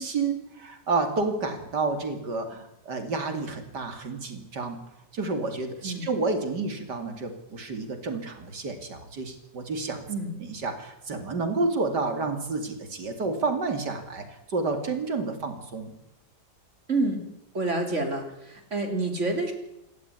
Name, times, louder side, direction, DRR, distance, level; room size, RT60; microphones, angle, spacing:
voice 1, 0.0-4.8 5.1-10.0 10.5-15.9, right 3 dB, 75° right, 6 dB, 3.2 m, -30 dB
voice 2, 16.9-17.2 17.5-19.5, right 2 dB, 40° right, 4 dB, 3.7 m, -28 dB
26.5 x 12.5 x 9.6 m, 0.88 s
omnidirectional pair, 1.9 m